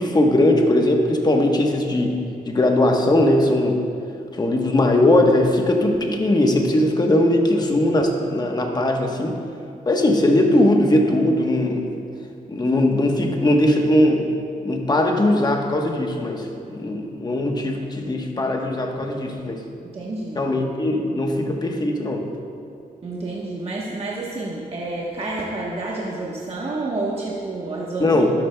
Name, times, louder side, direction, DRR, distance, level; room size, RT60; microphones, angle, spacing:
voice 1, 0.0-2.2 2.5-3.8 4.3-9.4 9.9-11.9 12.5-14.3 14.6-19.6 20.4-22.3 28.0-28.3, left 1 dB, 25° left, 2 dB, 1.1 m, -19 dB
voice 2, 19.8-20.5 23.0-28.2, right 2 dB, 40° right, -4 dB, 1.1 m, -29 dB
12.5 x 11.0 x 2.3 m, 2.4 s
cardioid pair, 100°, 15 cm